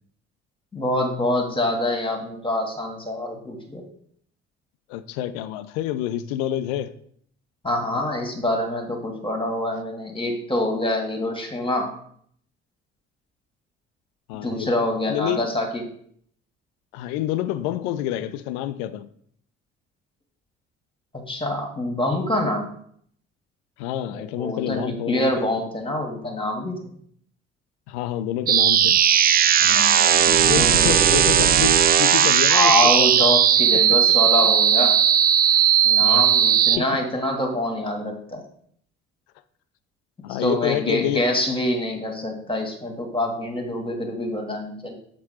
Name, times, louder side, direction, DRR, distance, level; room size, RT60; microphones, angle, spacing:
voice 1, 0.7-3.8 7.6-12.0 14.4-15.8 21.1-22.7 24.1-26.9 29.6-30.9 32.5-35.0 35.8-38.4 40.3-44.9, left 1 dB, 15° left, 3 dB, 1.8 m, -25 dB
voice 2, 4.9-6.9 14.3-14.7 15.1-15.4 16.9-19.1 23.8-25.5 27.9-29.0 30.5-33.3 33.7-34.0 36.0-36.3 36.8-36.9 40.2-41.2, left 12 dB, 65° left, 13 dB, 0.6 m, -28 dB
sound 1, 28.5-36.8, right 9 dB, 25° right, 0.4 m, -17 dB
7.6 x 4.3 x 4.3 m, 0.63 s
figure-of-eight pair, 50°, 36 cm